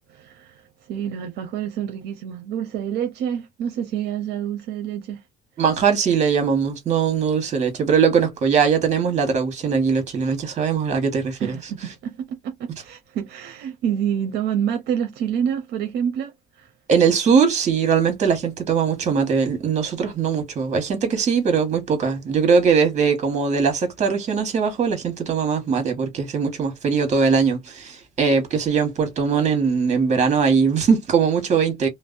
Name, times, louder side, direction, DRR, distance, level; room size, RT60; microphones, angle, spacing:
voice 1, 0.1-5.2 11.4-16.7, right 9 dB, 75° right, 0.6 m, -28 dB
voice 2, 5.6-11.6 16.9-31.9, right 6 dB, 45° right, 1.2 m, -20 dB
2.5 x 2.0 x 2.4 m
cardioid pair, 110°, 17 cm